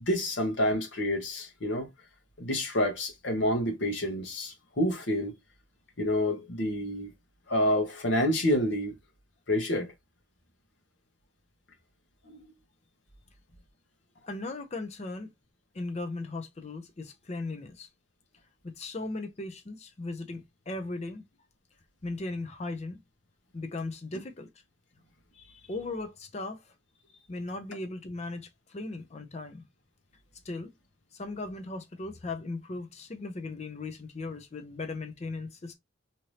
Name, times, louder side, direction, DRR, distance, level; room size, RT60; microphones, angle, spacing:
voice 1, 0.1-1.9 2.4-5.3 6.0-7.1 7.5-8.9 9.5-9.9 12.3-12.4, left 1 dB, 65° left, 1.0 m, -28 dB
voice 2, 14.3-15.3 15.7-17.9 18.6-21.2 22.0-23.0 23.5-24.5 25.3-26.7 27.3-29.6 30.4-30.7 31.1-35.8, left 2 dB, 35° left, 0.5 m, -37 dB
2.8 x 2.6 x 3.1 m
head